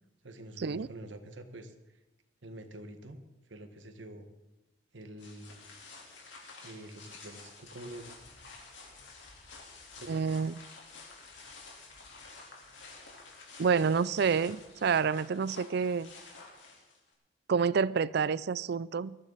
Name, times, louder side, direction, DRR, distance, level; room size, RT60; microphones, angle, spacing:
voice 1, 0.2-1.7 2.4-3.2 3.5-4.3 4.9-5.6 6.6-8.1 10.0-10.1, right 1 dB, 80° right, 7 dB, 1.5 m, -46 dB
sound 1, 5.2-17.1, left 3 dB, 85° left, 3.6 m, -51 dB
voice 2, 10.1-10.6 13.6-16.1 17.5-19.2, right 5 dB, 60° right, 19 dB, 0.4 m, -28 dB
21.0 x 13.0 x 4.1 m, 1.0 s
head